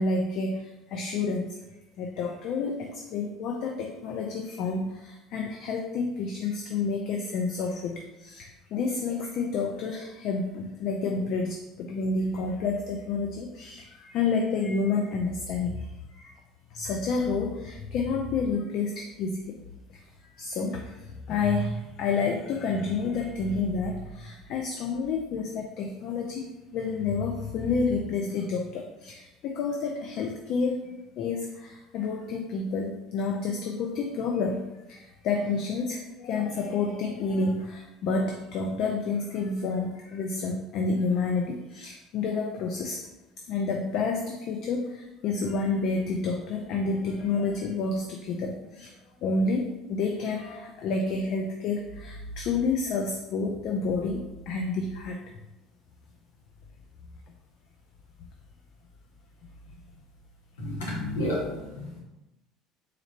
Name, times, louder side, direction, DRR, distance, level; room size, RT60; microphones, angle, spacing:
voice 1, 0.0-1.6 2.0-15.9 16.1-16.3 16.7-19.5 20.4-30.8 31.2-34.6 34.9-43.0 43.5-49.0 49.2-55.2, left 4 dB, 60° left, 3 dB, 0.4 m, -29 dB
voice 2, 60.6-62.0, left 1 dB, 90° left, -4 dB, 1.1 m, -31 dB
3.7 x 3.2 x 2.8 m, 1.0 s
hypercardioid pair, 75°, 0 cm